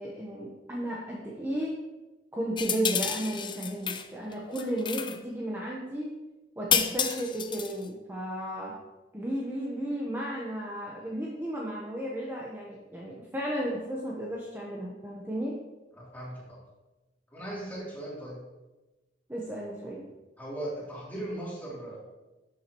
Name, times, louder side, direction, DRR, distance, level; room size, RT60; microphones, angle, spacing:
voice 1, 0.0-1.8 2.3-6.1 6.6-8.7 9.1-15.6 19.3-20.0, right 1 dB, 15° right, -4 dB, 1.1 m, -34 dB
sound 1, 2.6-4.1 4.3-5.2 6.7-7.8, left 7 dB, 25° left, 0.5 m, -30 dB
voice 2, 16.0-16.6 17.3-18.4 20.4-22.0, right 1 dB, 10° left, -7 dB, 3.2 m, -38 dB
12.0 x 7.3 x 3.1 m, 1.1 s
head